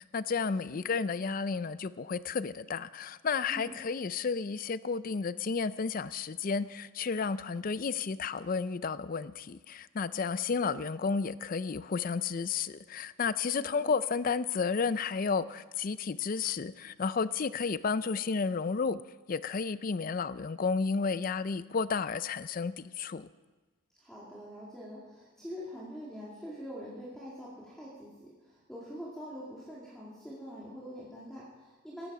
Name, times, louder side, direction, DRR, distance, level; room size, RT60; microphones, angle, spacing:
voice 1, 0.0-19.0 19.3-23.3, left 5 dB, 40° left, 16 dB, 0.4 m, -32 dB
voice 2, 13.5-13.9 24.0-32.1, equal, 5° left, -7 dB, 2.3 m, -44 dB
16.5 x 12.5 x 4.8 m, 1.2 s
head